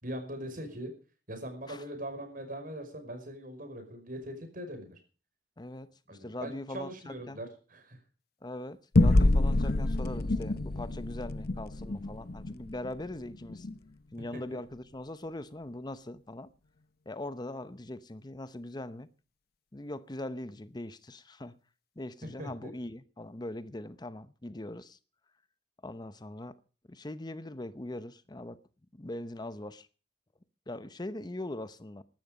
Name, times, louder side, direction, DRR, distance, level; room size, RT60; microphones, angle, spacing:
voice 1, 0.0-0.9 1.3-5.0 6.1-8.0 14.3-14.6 22.4-22.7, right 1 dB, 50° right, 5.4 m, -41 dB
voice 2, 5.6-7.4 8.4-13.7 14.1-16.5 17.1-19.1 19.7-21.6 22.0-25.0 25.8-26.6 26.9-28.6 28.9-29.9 30.7-32.0, left 1 dB, 25° left, 0.8 m, -41 dB
sound 1, 8.9-13.8, left 2 dB, 60° left, 0.9 m, -27 dB
15.5 x 12.5 x 5.2 m
head